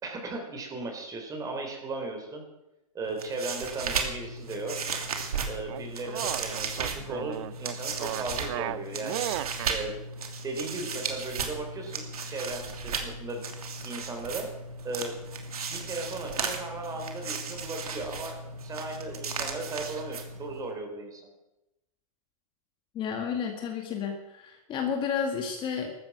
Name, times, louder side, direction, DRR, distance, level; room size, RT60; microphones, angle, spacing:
voice 1, 0.0-2.4 2.9-4.8 5.5-9.3 9.7-9.9 10.4-13.4 13.8-14.5 14.8-15.2 15.7-21.3, right 2 dB, 20° right, 4 dB, 3.7 m, -36 dB
sound 1, 3.0-20.7, right 5 dB, 90° right, 2.9 m, -35 dB
sound 2, 5.7-9.7, right 15 dB, 55° right, 0.6 m, -35 dB
voice 2, 22.9-25.9, left 7 dB, 25° left, 4 dB, 2.0 m, -31 dB
15.0 x 13.0 x 6.1 m, 0.92 s
hypercardioid pair, 140°, 19 cm